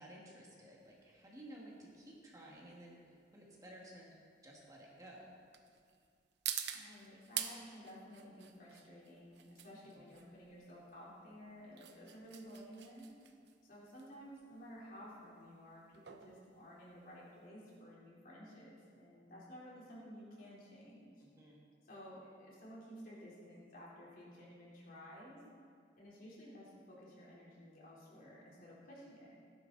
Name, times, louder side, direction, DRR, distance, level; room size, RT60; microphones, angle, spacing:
voice 1, 0.0-4.1 4.4-5.3 10.0-10.1 21.2-21.6, right 1 dB, 20° right, -4 dB, 2.1 m, -55 dB
sound 1, 0.8-17.5, right 10 dB, 70° right, 0.9 m, -48 dB
voice 2, 6.7-13.1 13.6-21.5 21.8-25.4 26.0-29.3, equal, 55° left, -6 dB, 3.9 m, -54 dB
17.0 x 10.0 x 4.1 m, 2.2 s
head